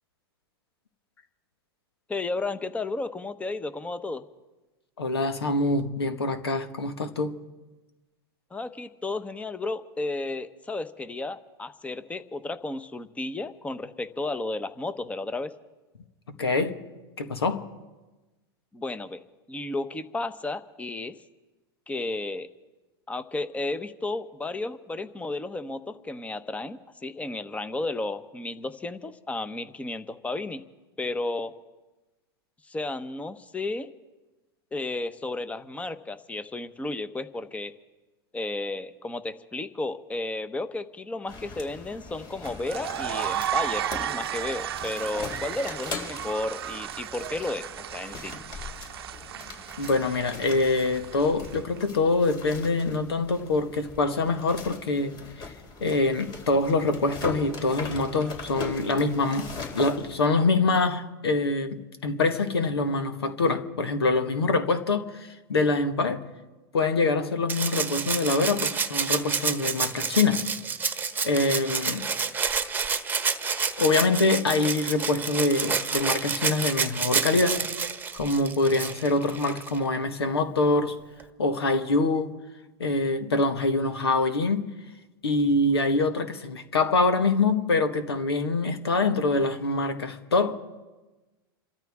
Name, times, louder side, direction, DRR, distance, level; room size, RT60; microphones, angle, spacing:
voice 1, 2.1-4.2 8.5-15.5 18.7-19.2 19.5-21.1 21.9-22.5 23.1-30.6 31.0-31.5 32.7-33.9 34.7-37.7 38.3-48.3, left 2 dB, 10° left, 0.9 m, -33 dB
voice 2, 5.0-7.4 16.4-16.8 17.2-17.6 49.8-55.1 55.8-66.2 66.7-70.5 71.2-72.1 73.8-77.7 78.1-81.0 81.4-82.3 82.8-84.7 85.2-90.6, left 3 dB, 90° left, 1.6 m, -25 dB
sound 1, 41.3-60.2, left 4 dB, 35° left, 4.2 m, -40 dB
sound 2, 42.4-51.8, right 11 dB, 80° right, 0.7 m, -34 dB
Rattle (instrument), 67.5-79.8 81.2-81.3, right 5 dB, 15° right, 1.2 m, -29 dB
28.5 x 13.5 x 3.6 m
hypercardioid pair, 105°, 13 cm